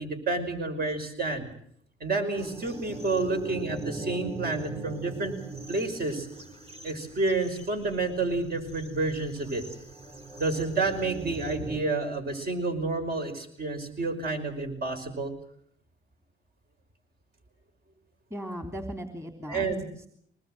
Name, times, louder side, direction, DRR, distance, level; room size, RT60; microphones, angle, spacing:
voice 1, 0.0-1.5 2.0-5.3 5.7-6.3 6.8-9.6 10.4-15.3 19.5-19.8, right 3 dB, 50° right, 6 dB, 5.5 m, -29 dB
sound 1, 2.4-11.8, right 2 dB, 30° right, 3.2 m, -41 dB
voice 2, 18.3-20.1, equal, 15° right, 6 dB, 3.3 m, -38 dB
24.5 x 20.0 x 7.8 m, 0.67 s
cardioid pair, 90°, 20 cm